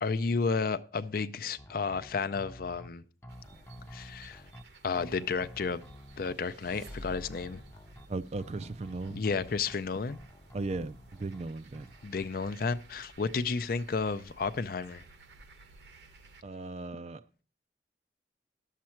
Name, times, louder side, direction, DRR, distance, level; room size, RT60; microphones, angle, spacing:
voice 1, 0.0-3.0 3.9-4.4 4.8-5.8 6.2-7.6 9.1-10.2 12.0-15.0, left 4 dB, 55° left, 0.5 m, -32 dB
sound 1, 1.6-2.9 3.2-4.6 5.0-6.4 6.7-8.1 8.4-9.8 10.1-11.4 11.7-12.3, equal, 15° left, 0.6 m, -50 dB
sound 2, 3.3-16.4, right 2 dB, 70° right, 1.1 m, -56 dB
sound 3, 6.0-7.8, equal, 85° right, 1.4 m, -48 dB
voice 2, 8.1-9.2 10.5-11.9 16.4-17.4, right 3 dB, 35° right, 0.4 m, -37 dB
11.5 x 7.5 x 4.4 m
head